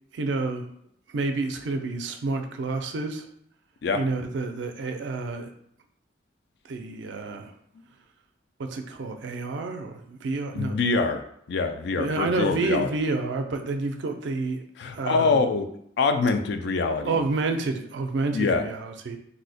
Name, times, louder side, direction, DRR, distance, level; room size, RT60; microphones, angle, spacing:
voice 1, 0.1-0.7 1.1-3.2 3.9-5.5 6.7-7.5 8.6-10.8 12.0-14.6 14.9-15.5 17.1-19.2, right 3 dB, 70° right, 6 dB, 0.4 m, -29 dB
voice 2, 10.5-11.2 11.5-12.9 14.8-15.7 16.0-17.2 18.3-18.6, left 4 dB, 65° left, 7 dB, 0.3 m, -24 dB
2.7 x 2.1 x 4.0 m, 0.70 s
head